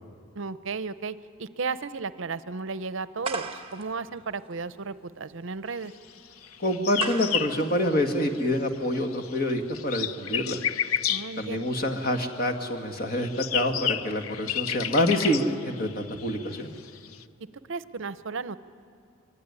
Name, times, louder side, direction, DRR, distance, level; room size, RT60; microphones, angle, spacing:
voice 1, 0.3-5.9 11.1-11.7 17.7-18.6, right 4 dB, 60° right, 14 dB, 0.7 m, -34 dB
sound 1, 3.2-8.8, right 4 dB, 25° right, 1.2 m, -39 dB
sound 2, 6.4-8.6 8.8-12.4 13.0-17.2, left 9 dB, 85° left, 0.7 m, -32 dB
voice 2, 6.6-10.6 11.4-16.8, left 1 dB, 45° left, 5 dB, 2.0 m, -27 dB
25.0 x 23.5 x 9.8 m, 2.3 s
head